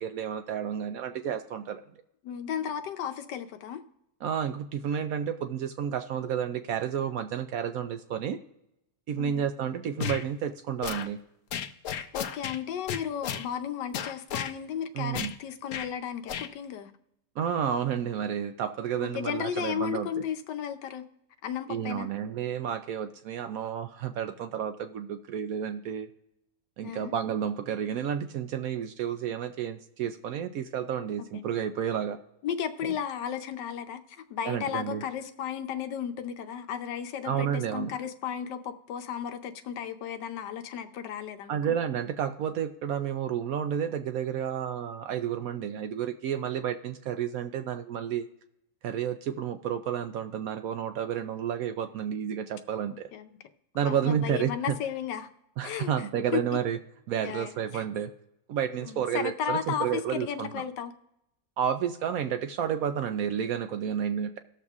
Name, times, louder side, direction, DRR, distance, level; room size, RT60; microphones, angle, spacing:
voice 1, 0.0-1.8 4.2-8.4 9.1-11.2 14.9-15.3 17.4-20.2 21.7-26.1 26.8-32.2 32.8-33.0 34.4-35.0 37.2-37.9 41.5-48.2 48.8-53.1 53.7-54.8 55.6-56.8 57.1-58.1 58.5-60.5 61.6-64.4, right 8 dB, 70° right, 8 dB, 0.9 m, -31 dB
voice 2, 2.2-3.8 9.2-9.4 12.1-16.9 19.0-21.0 21.4-22.1 26.8-27.1 31.3-31.4 32.4-41.8 53.1-53.3 53.8-55.3 55.6-56.6 57.2-57.8 58.8-60.9, left 8 dB, 85° left, 8 dB, 1.3 m, -34 dB
sound 1, 10.0-10.2 10.8-11.1 11.5-12.6 12.9-13.5 13.9-14.5 15.1-15.4 15.7-15.9 16.3-16.5, left 8 dB, 65° left, 0.8 m, -33 dB
19.0 x 6.6 x 2.4 m, 0.84 s
omnidirectional pair, 1.8 m